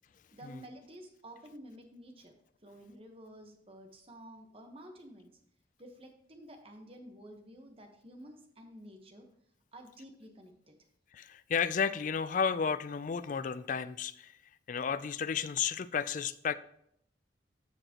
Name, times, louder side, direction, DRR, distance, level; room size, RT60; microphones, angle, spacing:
voice 1, 0.3-2.3 2.6-5.3 5.8-9.3 9.7-10.8, right 1 dB, 30° right, 4 dB, 1.1 m, -51 dB
voice 2, 11.1-14.3 14.7-16.5, left 6 dB, 45° left, 15 dB, 0.3 m, -32 dB
14.0 x 4.9 x 2.9 m, 0.72 s
head